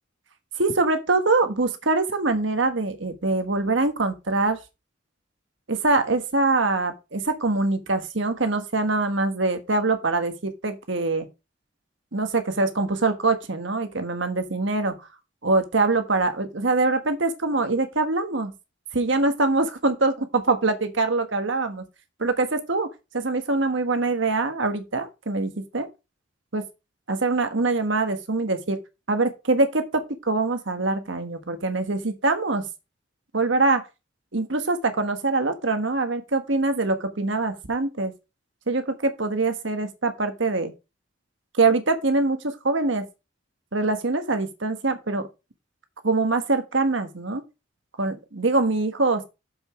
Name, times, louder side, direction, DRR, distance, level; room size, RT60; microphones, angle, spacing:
voice 1, 0.6-4.6 5.7-11.3 12.1-15.0 15.4-18.5 18.9-21.8 22.2-22.9 23.1-25.9 26.5-26.6 27.1-28.8 29.1-32.7 33.3-33.8 34.3-38.1 38.7-40.7 41.6-43.0 43.7-45.3 46.0-47.4 48.0-49.2, right 3 dB, 70° right, 1.4 m, -24 dB
7.2 x 6.8 x 4.7 m
head